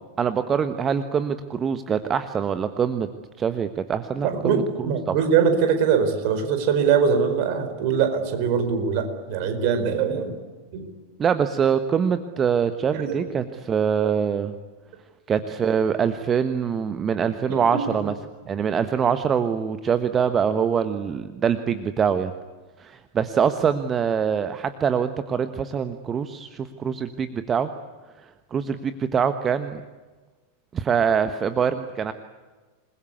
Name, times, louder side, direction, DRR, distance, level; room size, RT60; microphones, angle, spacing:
voice 1, 0.2-3.1 3.4-5.1 11.2-14.5 15.3-18.1 18.5-22.3 22.8-27.7 28.5-29.8 30.7-32.1, right 7 dB, 25° right, 11 dB, 1.3 m, -24 dB
voice 2, 4.2-10.4 10.7-10.9 12.9-13.3 17.5-17.9, right 6 dB, 45° right, 8 dB, 4.6 m, -22 dB
27.5 x 21.5 x 8.5 m, 1.3 s
figure-of-eight pair, 90°, 0 cm